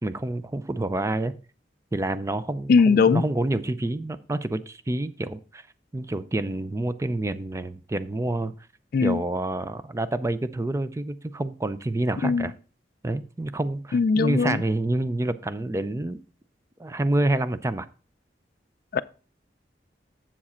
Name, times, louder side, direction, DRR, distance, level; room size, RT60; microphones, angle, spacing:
voice 1, 0.0-1.4 1.9-5.7 5.9-8.6 9.0-12.5 13.0-16.2 16.8-17.9, right 2 dB, 15° right, 0.4 m, -28 dB
voice 2, 2.7-3.2 8.9-9.2 12.2-12.5 13.9-14.6 18.9-19.0, left 5 dB, 55° left, 0.3 m, -20 dB
7.3 x 7.3 x 4.3 m
head